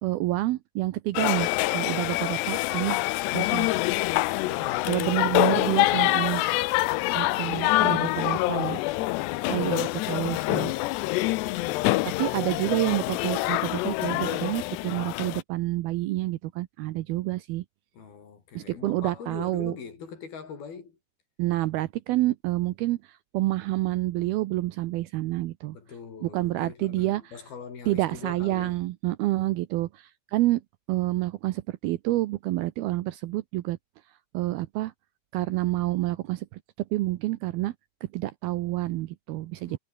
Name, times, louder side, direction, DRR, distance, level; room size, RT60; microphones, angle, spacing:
voice 1, 0.0-3.0 3.3-3.7 4.9-6.4 7.2-8.8 9.5-10.7 12.0-17.6 18.6-19.7 21.4-25.8 26.2-27.2 27.9-30.6 30.9-33.8 34.3-34.9 35.3-36.5 36.9-37.7 38.1-39.8, right 17 dB, 75° right, 2.4 m, -28 dB
sound 1, 1.2-15.4, left 19 dB, 85° left, 2.8 m, -26 dB
voice 2, 4.5-4.9 7.1-7.8 12.0-12.4 17.9-21.0 25.7-28.8 39.7-39.8, left 6 dB, 60° left, 6.3 m, -43 dB
omnidirectional pair, 5.0 m